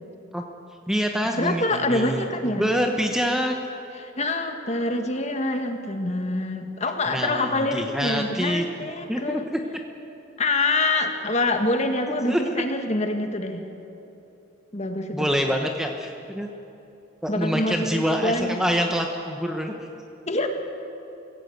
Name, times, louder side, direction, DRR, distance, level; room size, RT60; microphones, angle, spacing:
voice 1, 0.9-2.3 2.6-3.5 7.1-8.6 9.1-9.4 12.3-12.6 15.1-16.5 17.2-19.7, equal, 5° right, 3 dB, 1.0 m, -25 dB
voice 2, 1.4-2.7 4.0-9.4 10.4-13.7 14.7-15.3 17.3-18.6 20.3-20.5, left 2 dB, 35° left, 5 dB, 1.7 m, -26 dB
24.5 x 16.5 x 8.0 m, 2.9 s
head